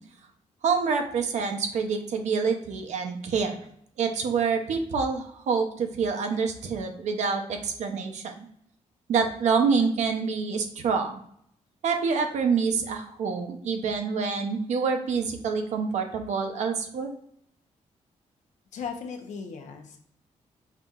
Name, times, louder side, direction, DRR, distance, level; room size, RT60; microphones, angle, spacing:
voice 1, 0.6-3.6 4.0-8.5 9.1-11.2 11.8-17.1, right 5 dB, 70° right, 5 dB, 0.6 m, -27 dB
voice 2, 18.7-20.0, left 6 dB, 75° left, 5 dB, 0.7 m, -37 dB
5.7 x 2.7 x 2.4 m, 0.67 s
wide cardioid pair, 160°, 13 cm